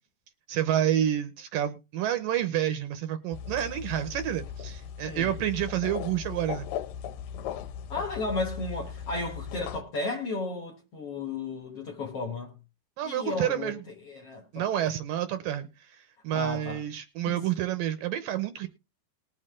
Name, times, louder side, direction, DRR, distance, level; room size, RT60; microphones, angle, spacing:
voice 1, 0.5-6.7 13.0-13.8 14.5-18.7, right 11 dB, 75° right, 2.3 m, -29 dB
sound 1, 3.3-9.8, left 8 dB, 75° left, 2.3 m, -38 dB
voice 2, 5.0-5.4 7.9-12.6 13.0-13.7 14.1-14.7 16.3-16.8 17.3-17.4, left 3 dB, 55° left, 1.9 m, -34 dB
20.0 x 6.6 x 3.7 m
omnidirectional pair, 4.5 m